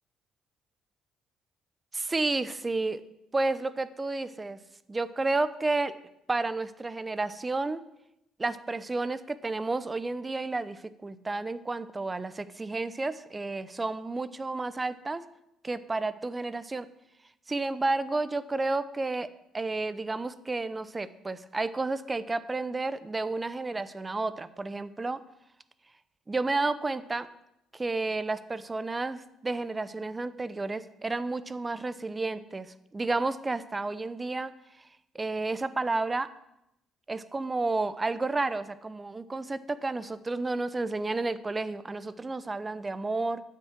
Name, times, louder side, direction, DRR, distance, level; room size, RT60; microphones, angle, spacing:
voice 1, 1.9-3.0 3.3-4.6 4.9-5.9 6.3-7.8 8.4-15.2 15.6-16.9 17.5-19.3 19.5-25.2 26.3-27.3 27.7-32.7 32.9-34.5 35.1-36.3 37.1-43.4, right 3 dB, 25° right, 14 dB, 0.8 m, -31 dB
9.7 x 7.6 x 6.0 m, 0.84 s
hypercardioid pair, 50°, 0 cm